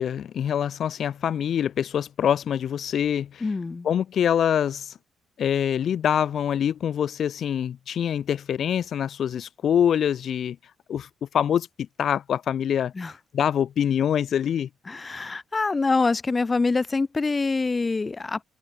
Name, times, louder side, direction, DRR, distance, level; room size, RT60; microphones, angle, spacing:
voice 1, 0.0-3.4 3.8-5.0 5.4-10.6 10.9-11.7 12.0-14.7, left 9 dB, 60° left, 3.1 m, -25 dB
voice 2, 3.4-3.9 12.9-13.1 14.9-18.4, left 3 dB, 25° left, 5.8 m, -25 dB
cardioid pair, 90°, 0 cm